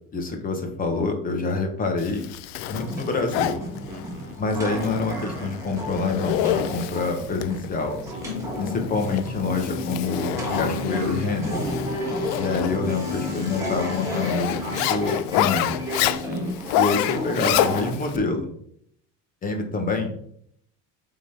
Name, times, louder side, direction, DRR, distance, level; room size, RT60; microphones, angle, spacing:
voice 1, 0.1-2.2 2.7-3.6 4.4-8.0 8.6-11.6 12.4-14.6 14.9-15.7 16.7-18.5 19.4-20.1, left 3 dB, 25° left, 4 dB, 1.1 m, -26 dB
Zipper (clothing), 2.0-18.2, left 12 dB, 80° left, 0.6 m, -28 dB
sound 1, 2.6-17.9, right 1 dB, 10° right, 1.6 m, -33 dB
voice 2, 3.9-4.4 8.0-8.4 11.6-12.2 16.0-16.6, right 5 dB, 65° right, 6 dB, 1.2 m, -42 dB
sound 2, 8.2-16.5, left 4 dB, 60° left, 1.6 m, -35 dB
8.1 x 3.9 x 4.3 m, 0.66 s
cardioid pair, 160°, 33 cm